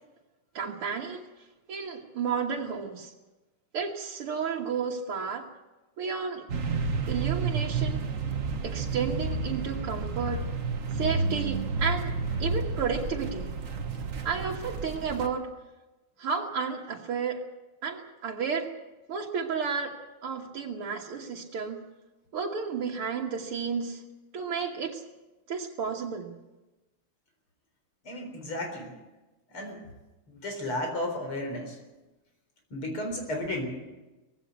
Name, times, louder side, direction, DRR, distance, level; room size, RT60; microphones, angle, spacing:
voice 1, 0.5-1.3 1.7-3.1 3.7-5.5 6.0-6.5 7.1-8.1 8.6-10.5 10.9-12.1 12.4-13.5 14.2-15.5 16.2-17.4 17.8-18.7 19.1-19.9 20.2-21.8 22.3-24.0 24.3-25.0 25.5-26.3, right 6 dB, 80° right, -3 dB, 2.4 m, -32 dB
sound 1, 6.5-15.3, right 4 dB, 40° right, 1.5 m, -31 dB
voice 2, 28.0-28.9 29.5-29.8 30.3-31.8 32.7-33.7, left 1 dB, 75° left, 3 dB, 4.9 m, -33 dB
20.0 x 16.5 x 8.2 m, 1.1 s
omnidirectional pair, 2.4 m